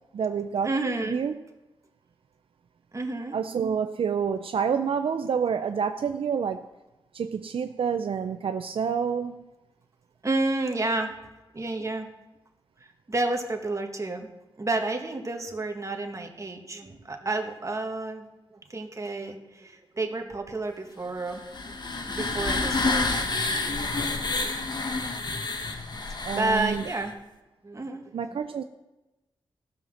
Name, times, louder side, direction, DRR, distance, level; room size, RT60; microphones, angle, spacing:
voice 1, 0.1-0.7 1.1-1.3 3.3-6.7 7.1-9.4 26.2-26.8 28.1-28.6, right 6 dB, 70° right, 8 dB, 0.5 m, -28 dB
voice 2, 0.6-1.2 2.9-3.4 10.2-11.1 11.5-12.1 12.8-14.3 14.6-21.8 22.1-23.2 24.9-25.0 26.1-27.1 27.6-28.1 28.5-28.6, right 2 dB, 35° right, 3 dB, 1.6 m, -30 dB
sound 1, 21.3-27.1, left 3 dB, 50° left, 1.3 m, -29 dB
15.5 x 5.8 x 6.4 m, 1.0 s
cardioid pair, 65°, 10 cm